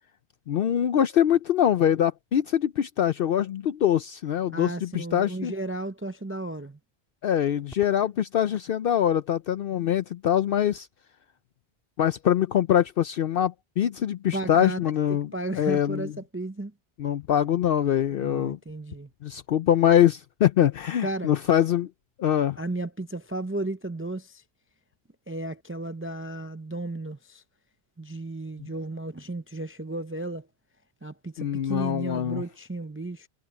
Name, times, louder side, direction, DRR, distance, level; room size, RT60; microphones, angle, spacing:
voice 1, 0.5-5.5 7.2-10.9 12.0-16.1 17.0-18.6 19.2-21.9 22.2-22.6 31.4-32.4, left 10 dB, 65° left, 0.7 m, -23 dB
voice 2, 4.5-6.8 14.3-14.8 15.1-16.7 18.1-19.1 21.0-21.3 22.6-24.4 25.3-27.4 28.0-30.5 31.0-33.3, right 2 dB, 20° right, 0.4 m, -34 dB
Crackle, 7.6-8.8 10.4-10.9, equal, ahead, 2.8 m, -53 dB
omnidirectional pair, 1.1 m